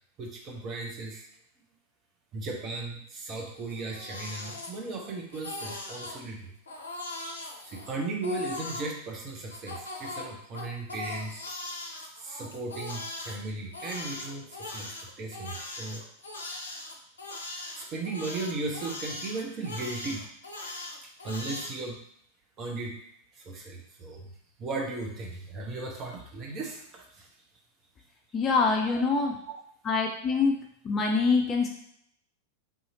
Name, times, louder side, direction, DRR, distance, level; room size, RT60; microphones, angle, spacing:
voice 1, 0.2-1.3 2.3-6.5 7.6-11.5 12.2-16.0 17.7-20.2 21.2-22.0 22.6-23.0 23.3-27.3 28.9-29.0 29.5-29.6 30.3-30.4, right 3 dB, 30° right, 0 dB, 0.8 m, -36 dB
Crying sobbing, 3.6-5.1 5.3-6.2 6.7-8.9 9.5-13.3 13.7-21.8, left 2 dB, 75° left, 0.5 m, -39 dB
voice 2, 28.3-29.3 29.8-30.6 30.8-31.7, left 4 dB, 25° left, 1 dB, 0.5 m, -24 dB
3.8 x 2.8 x 2.8 m, 0.68 s
figure-of-eight pair, 90°, 0 cm